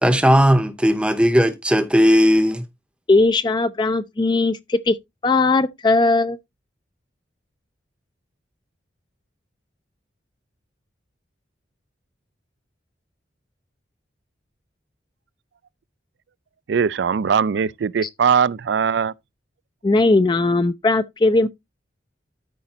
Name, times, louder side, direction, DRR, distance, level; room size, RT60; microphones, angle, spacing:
voice 1, 0.0-2.6, equal, 5° right, 0.7 m, -16 dB
voice 2, 3.1-5.0 5.2-6.4 18.0-18.1 19.8-21.5, left 3 dB, 25° left, 0.4 m, -18 dB
voice 3, 16.7-19.1, right 6 dB, 70° right, 0.4 m, -20 dB
13.0 x 5.1 x 2.7 m
head